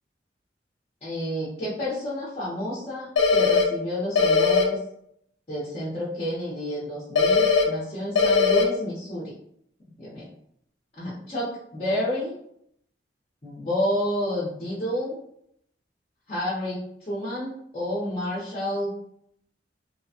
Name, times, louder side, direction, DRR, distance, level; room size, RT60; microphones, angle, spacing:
voice 1, 1.0-4.8 5.5-9.3 10.0-10.3 11.0-12.3 13.4-15.2 16.3-18.9, left 1 dB, 35° left, -8 dB, 0.7 m, -30 dB
sound 1, 3.2-3.6 4.2-4.6 7.2-7.6 8.2-8.6, left 5 dB, 90° left, 0.5 m, -19 dB
2.8 x 2.2 x 2.7 m, 0.71 s
head